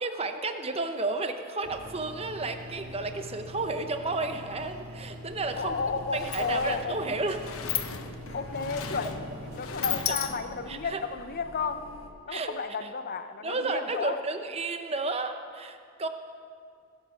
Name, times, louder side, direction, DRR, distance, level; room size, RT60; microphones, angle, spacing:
voice 1, 0.0-5.8 6.1-7.5 10.1-10.2 10.7-11.0 12.3-12.5 12.8-12.9 13.4-16.1, right 3 dB, 30° right, 7 dB, 0.8 m, -32 dB
sound 1, 1.6-9.6, left 1 dB, 75° right, 1.7 m, -44 dB
sound 2, 5.3-12.1, left 1 dB, 65° left, 1.5 m, -47 dB
Sliding door, 5.5-5.6 5.8-10.8, left 9 dB, 85° left, 0.8 m, -36 dB
voice 2, 5.6-7.0 8.3-11.8 12.3-14.2, left 4 dB, 50° left, 9 dB, 0.7 m, -32 dB
20.0 x 8.3 x 5.1 m, 2.3 s
head